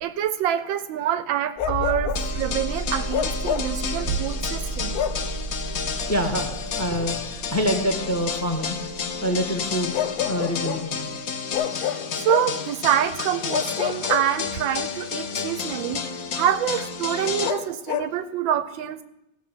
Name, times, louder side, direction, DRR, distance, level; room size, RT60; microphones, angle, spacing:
voice 1, 0.0-5.0 11.7-16.0 16.4-19.0, right 10 dB, 75° right, 13 dB, 1.3 m, -26 dB
Bark, 1.6-2.3 3.1-3.8 4.9-5.3 7.0-7.1 9.9-10.9 11.5-12.6 13.5-14.8 17.4-18.2, left 10 dB, 85° left, 0.8 m, -28 dB
sound 1, 1.6-10.0 11.5-11.6, right 2 dB, 5° right, 1.8 m, -33 dB
sound 2, 2.2-17.5, left 6 dB, 55° left, 1.1 m, -31 dB
voice 2, 5.8-7.2 7.5-8.8 9.2-10.0 10.2-11.0, equal, 10° left, 5 dB, 0.9 m, -26 dB
15.5 x 6.1 x 7.3 m, 0.89 s
omnidirectional pair, 2.3 m